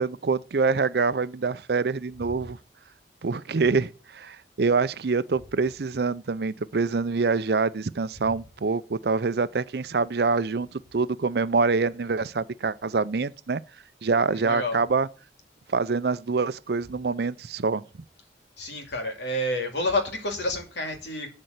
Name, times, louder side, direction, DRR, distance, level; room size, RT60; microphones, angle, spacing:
voice 1, 0.0-2.6 3.2-13.6 14.0-15.1 15.7-17.8, right 4 dB, 65° right, 0.5 m, -25 dB
voice 2, 14.3-14.8 18.6-21.3, left 1 dB, 80° left, 2.7 m, -29 dB
12.0 x 4.4 x 8.0 m
head